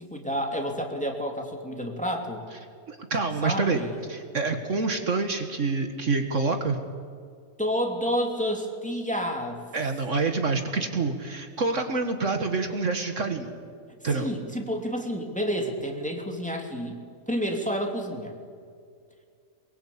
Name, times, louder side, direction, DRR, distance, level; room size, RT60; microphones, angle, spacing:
voice 1, 0.0-2.4 3.4-4.0 7.6-9.6 14.1-17.0 17.3-18.3, equal, 5° left, 2 dB, 2.9 m, -29 dB
voice 2, 2.9-3.8 4.1-6.8 9.7-13.5 14.0-14.3, right 4 dB, 55° right, 6 dB, 1.9 m, -27 dB
23.0 x 22.5 x 8.6 m, 2.2 s
omnidirectional pair, 1.5 m